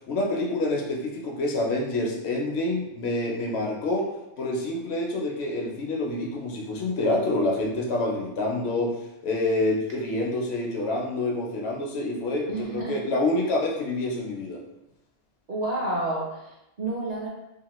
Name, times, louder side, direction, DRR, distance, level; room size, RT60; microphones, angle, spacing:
voice 1, 0.1-14.6, left 2 dB, 75° left, 0 dB, 0.8 m, -27 dB
voice 2, 12.5-13.0 15.5-17.3, right 2 dB, 45° right, -5 dB, 0.6 m, -30 dB
2.9 x 2.2 x 2.9 m, 0.91 s
omnidirectional pair, 1.2 m